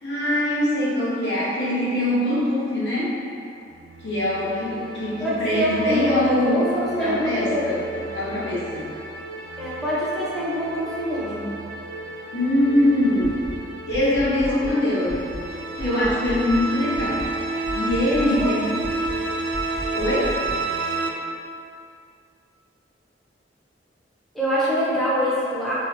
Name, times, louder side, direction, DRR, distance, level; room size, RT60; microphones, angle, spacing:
voice 1, 0.0-3.1 4.0-6.6 7.0-7.8 8.1-8.9 12.3-13.4 13.9-15.2 15.8-17.2 17.7-18.7 19.9-20.3, left 1 dB, 70° left, -8 dB, 0.9 m, -23 dB
sound 1, 3.7-21.1, right 2 dB, 70° right, 0.3 m, -32 dB
voice 2, 5.2-7.6 7.9-8.1 9.6-11.6 14.4-14.6 18.2-18.6 24.3-25.7, equal, ahead, -10 dB, 0.5 m, -25 dB
sound 2, 13.2-13.6 13.9-14.8 15.1-15.5 15.8-16.6 16.9-17.3 17.6-18.5 18.8-19.2 19.5-20.6, equal, 40° left, 0.9 m, -35 dB
3.0 x 2.4 x 3.2 m, 2.5 s
head